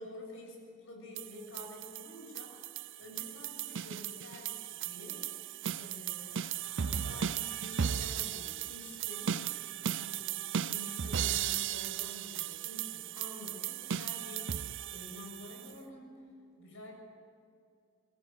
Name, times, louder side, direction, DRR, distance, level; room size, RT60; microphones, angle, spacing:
voice 1, 0.0-9.6 9.9-10.3 10.7-14.5 14.9-16.2 16.5-16.9, left 1 dB, 65° left, 1 dB, 7.3 m, -49 dB
sound 1, 1.2-15.7, right 9 dB, 60° right, 0.5 m, -36 dB
23.0 x 20.5 x 7.6 m, 2.5 s
head